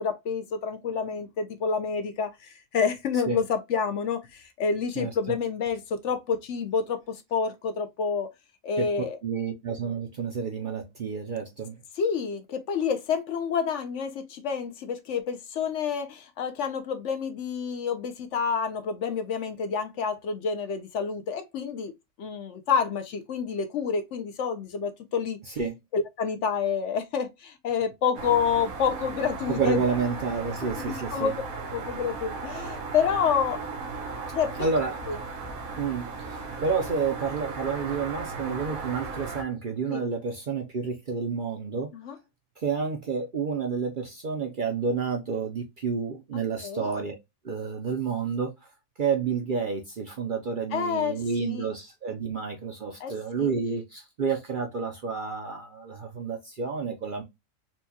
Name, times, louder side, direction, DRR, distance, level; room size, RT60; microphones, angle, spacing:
voice 1, 0.0-8.3 8.6-9.2 12.0-21.9 22.2-25.4 25.9-29.8 30.8-31.3 31.7-33.6 34.4-34.7 35.1-35.2 39.9-40.0 41.9-42.2 46.3-46.9 50.7-51.7 53.0-53.5, left 6 dB, 65° left, 0.9 m, -28 dB
voice 2, 9.2-11.7 25.5-25.8 29.5-31.3 34.6-35.0 35.8-41.9 42.6-47.1 47.4-48.5 49.0-57.2, right 5 dB, 50° right, 0.6 m, -30 dB
sound 1, 28.1-39.4, right 4 dB, 85° right, 1.4 m, -36 dB
4.4 x 2.3 x 2.7 m
omnidirectional pair, 1.4 m